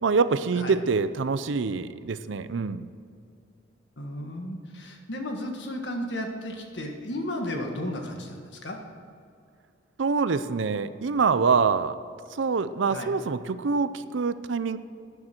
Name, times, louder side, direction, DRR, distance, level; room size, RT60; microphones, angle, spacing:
voice 1, 0.0-2.9 10.0-12.0 12.3-14.8, right 5 dB, 75° right, 14 dB, 0.5 m, -25 dB
voice 2, 4.0-8.8 12.9-13.1, left 1 dB, 65° left, 3 dB, 1.6 m, -34 dB
12.5 x 9.9 x 4.5 m, 2.4 s
head